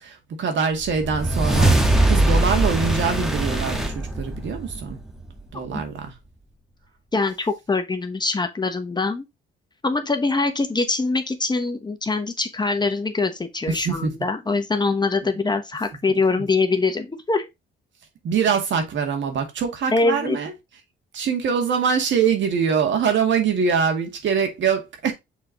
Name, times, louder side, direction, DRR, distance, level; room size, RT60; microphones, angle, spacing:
voice 1, 0.3-5.0 5.5-6.1 13.7-14.1 16.4-16.5 18.2-20.5 21.1-25.1, right 6 dB, 70° right, 2.1 m, -23 dB
sound 1, 0.8-5.4, right 2 dB, ahead, 1.4 m, -21 dB
voice 2, 7.1-9.2 9.8-17.5 19.9-20.4, left 3 dB, 20° left, 1.0 m, -23 dB
6.6 x 3.8 x 3.9 m
cardioid pair, 90°, 20 cm